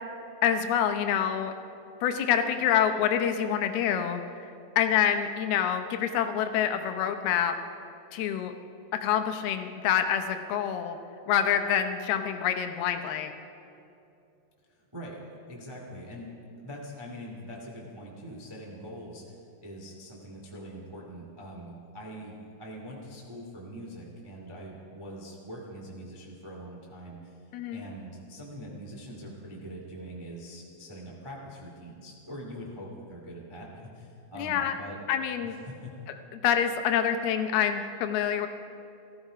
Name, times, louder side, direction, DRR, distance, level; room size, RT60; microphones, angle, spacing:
voice 1, 0.4-1.5 2.0-4.2 4.8-7.5 8.1-8.5 9.0-11.0 11.3-13.3 27.5-27.8 34.4-34.8 35.1-35.5 36.3-38.5, left 9 dB, 75° left, 7 dB, 2.7 m, -26 dB
voice 2, 14.7-27.4 27.7-35.0 35.4-36.0, equal, 30° right, -2 dB, 0.4 m, -43 dB
18.5 x 14.0 x 5.0 m, 2.7 s
omnidirectional pair, 4.7 m